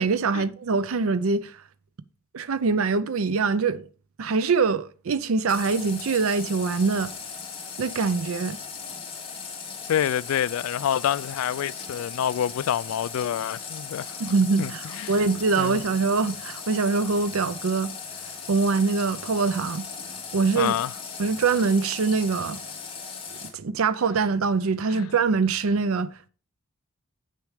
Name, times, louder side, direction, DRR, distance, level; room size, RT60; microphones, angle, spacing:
voice 1, 0.0-1.6 2.3-3.8 4.2-7.1 7.8-8.6 14.2-17.9 18.5-19.9 20.3-20.8 21.2-22.6 23.4-26.3, right 4 dB, 80° right, 0.5 m, -24 dB
Water tap faucet, 5.5-23.5, left 5 dB, 25° left, 2.1 m, -38 dB
voice 2, 9.9-14.2 14.6-15.1 15.6-15.8 20.5-20.9 24.9-25.1, left 10 dB, 80° left, 0.3 m, -27 dB
8.5 x 6.4 x 4.9 m
head